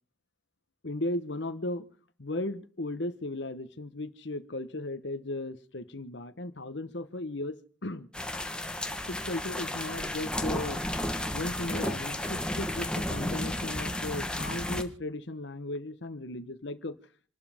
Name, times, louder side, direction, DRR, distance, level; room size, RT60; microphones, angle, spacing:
voice 1, 0.8-1.9 2.2-8.1 9.1-10.8 11.3-16.9, left 2 dB, 65° left, 1.1 m, -36 dB
sound 1, 8.1-14.8, left 1 dB, 5° left, 1.2 m, -33 dB
28.0 x 12.5 x 3.6 m
head